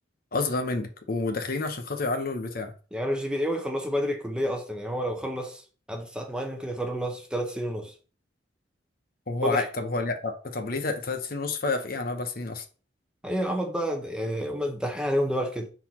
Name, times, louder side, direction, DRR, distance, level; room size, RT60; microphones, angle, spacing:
voice 1, 0.3-2.7 9.3-12.6, left 3 dB, 50° left, 0.9 m, -29 dB
voice 2, 2.9-7.9 9.4-9.7 13.2-15.7, equal, 5° right, 0.8 m, -29 dB
4.5 x 4.0 x 5.6 m
head